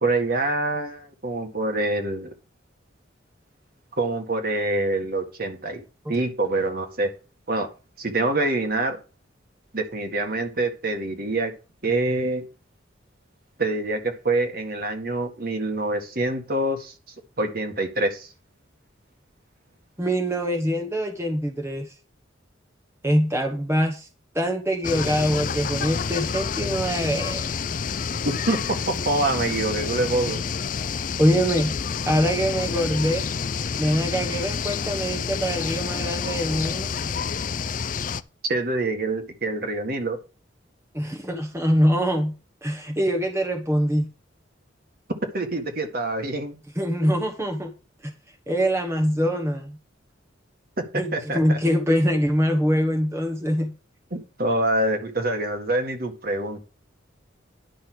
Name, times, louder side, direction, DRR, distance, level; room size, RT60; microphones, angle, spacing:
voice 1, 0.0-2.3 4.0-5.8 6.1-7.1 7.5-7.7 8.0-9.0 9.7-11.5 11.8-12.4 13.6-16.9 17.4-18.3 28.2-30.4 38.4-40.2 45.3-46.6 50.8-50.9 51.1-51.6 54.1-56.6, right 2 dB, 50° right, 5 dB, 1.8 m, -25 dB
voice 2, 20.0-21.9 23.0-24.1 24.3-27.6 31.2-33.2 33.8-36.9 40.9-42.3 42.6-44.1 46.8-47.7 48.0-48.1 48.5-49.8 50.9-53.7, equal, 15° right, 2 dB, 1.2 m, -24 dB
sound 1, 24.8-38.2, left 6 dB, 45° left, 0.5 m, -28 dB
10.5 x 5.5 x 6.2 m, 0.33 s
head